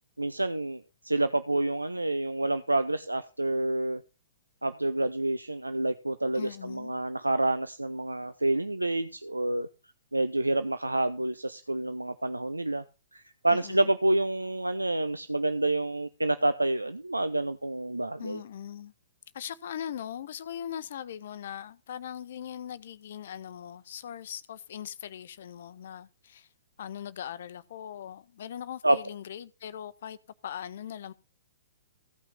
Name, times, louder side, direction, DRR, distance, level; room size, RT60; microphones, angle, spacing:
voice 1, 0.2-4.0 4.6-9.7 10.1-12.8 13.1-18.4 28.8-29.0, right 2 dB, 85° right, 0.6 m, -28 dB
voice 2, 6.3-6.9 13.5-13.9 18.2-18.9 19.3-26.5 26.8-30.2 30.4-31.1, left 9 dB, 55° left, 0.6 m, -40 dB
15.5 x 5.8 x 5.5 m
figure-of-eight pair, 115°, 0 cm